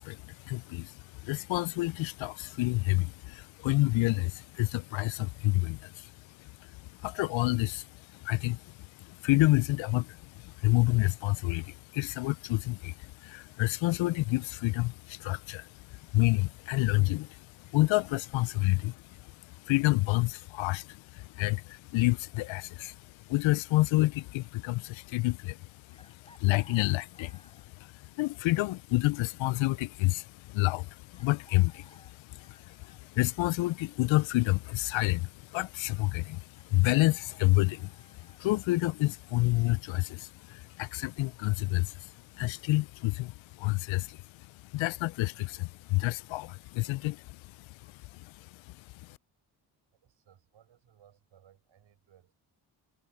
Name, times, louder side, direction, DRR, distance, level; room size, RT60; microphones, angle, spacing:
voice 1, 0.0-49.2, left 20 dB, 70° left, 0.6 m, -29 dB
Chicken rooster, 25.9-27.9 29.6-29.7 31.1-33.0 36.5-38.4, left 1 dB, 10° left, 5.2 m, -60 dB
voice 2, 49.9-52.3, right 10 dB, 65° right, 5.5 m, -62 dB
hypercardioid pair, 50°, 49 cm